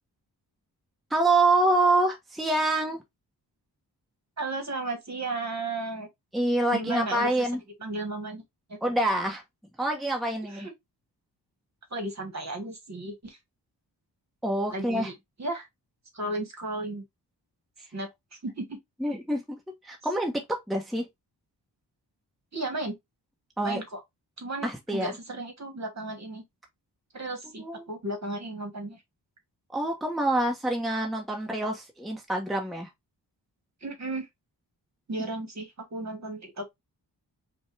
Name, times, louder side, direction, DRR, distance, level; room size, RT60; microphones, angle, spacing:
voice 1, 1.1-3.0 6.3-7.6 8.8-9.4 9.8-10.7 14.4-15.1 19.0-19.6 19.8-20.3 20.7-21.0 23.6-23.8 24.6-25.1 27.6-27.9 29.7-32.9, right 2 dB, ahead, 0.9 m, -26 dB
voice 2, 4.4-6.1 6.7-7.3 7.8-8.4 8.7-8.8 10.4-10.7 11.9-13.4 14.7-15.7 16.1-17.0 17.9-18.8 22.5-23.0 23.6-24.0 24.4-26.4 27.1-29.0 33.8-34.3 35.1-36.7, right 2 dB, 40° right, 1.4 m, -34 dB
5.2 x 2.3 x 3.2 m
wide cardioid pair, 105°, 41 cm